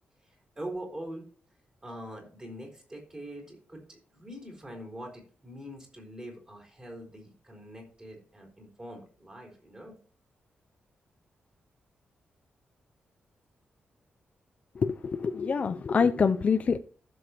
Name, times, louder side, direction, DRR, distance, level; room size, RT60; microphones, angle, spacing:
voice 1, 0.2-1.2 1.8-10.0, right 1 dB, 20° right, 1 dB, 4.0 m, -43 dB
voice 2, 14.8-16.8, left 5 dB, 40° left, 8 dB, 0.4 m, -26 dB
15.0 x 6.9 x 2.9 m, 0.40 s
wide cardioid pair, 145°, 4 cm